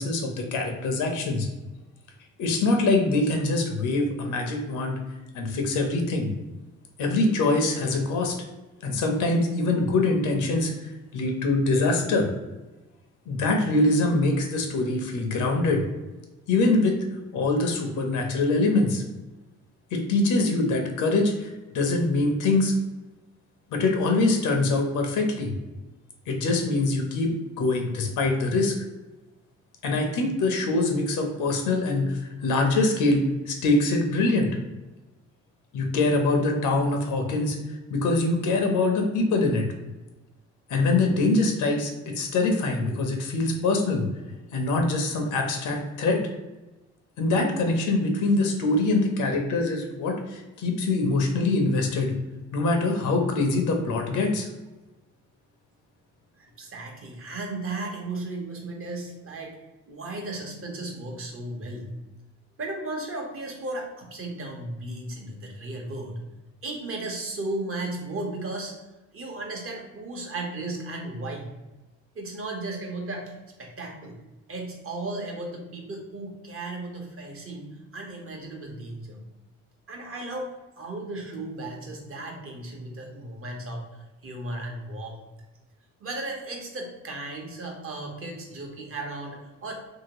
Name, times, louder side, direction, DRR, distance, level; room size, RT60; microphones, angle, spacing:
voice 1, 0.0-1.5 2.4-5.0 5.3-6.3 7.0-8.4 8.8-12.3 13.3-15.8 16.5-17.0 17.3-19.0 19.9-22.7 23.7-25.5 26.3-28.7 29.8-34.5 35.7-37.6 37.9-39.6 40.7-44.0 44.5-46.2 47.2-52.1 52.5-54.5, left 2 dB, 85° left, 3 dB, 0.8 m, -24 dB
voice 2, 56.4-59.6 59.9-61.9 62.6-66.3 66.6-68.8 69.1-71.5 72.1-74.2 74.5-79.2 79.9-85.2 86.0-89.7, right 2 dB, 45° right, 1 dB, 0.9 m, -35 dB
2.9 x 2.8 x 2.9 m, 1.1 s
cardioid pair, 90°, 30 cm